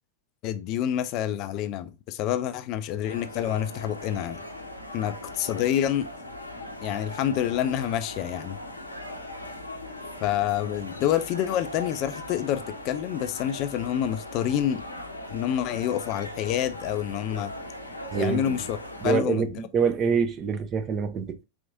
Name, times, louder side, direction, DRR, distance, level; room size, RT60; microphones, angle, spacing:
voice 1, 0.4-4.4 4.9-6.1 6.8-8.6 10.2-14.8 15.3-17.5 18.2-18.8 19.0-19.5, left 11 dB, 40° left, 0.4 m, -27 dB
sound 1, 3.0-19.2, left 1 dB, 85° left, 0.7 m, -39 dB
voice 2, 18.1-18.6 19.0-21.4, right 6 dB, 30° right, 0.6 m, -26 dB
4.6 x 3.4 x 2.6 m
figure-of-eight pair, 90°, 0 cm